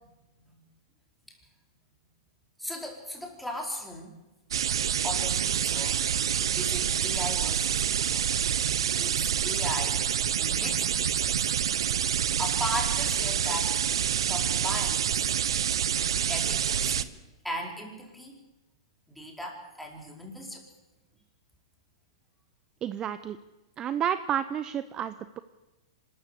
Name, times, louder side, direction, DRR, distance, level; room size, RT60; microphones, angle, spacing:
voice 1, 2.6-4.1 5.0-6.0 6.6-8.3 9.0-10.0 10.4-13.8 14.3-15.3 16.3-17.1 17.4-18.4 19.1-20.6, left 1 dB, ahead, 0 dB, 4.6 m, -37 dB
sound 1, 4.5-17.0, right 9 dB, 80° right, 0.9 m, -27 dB
voice 2, 22.8-23.4 23.8-25.4, right 9 dB, 25° right, 13 dB, 0.7 m, -30 dB
24.5 x 13.5 x 8.4 m, 1.1 s
hypercardioid pair, 120°, 3 cm